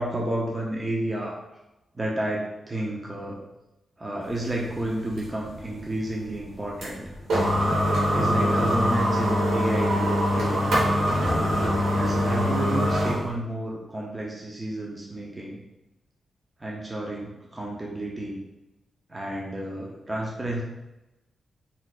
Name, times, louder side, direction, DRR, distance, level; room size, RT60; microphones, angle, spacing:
voice 1, 0.0-1.4 1.9-3.4 4.0-7.0 8.1-10.7 11.9-15.6 16.6-18.4 19.1-20.6, right 1 dB, 25° right, -3 dB, 0.5 m, -31 dB
sound 1, 4.2-13.3, equal, 90° right, 1.1 m, -24 dB
4.0 x 2.7 x 2.3 m, 0.98 s
cardioid pair, 85°, 0 cm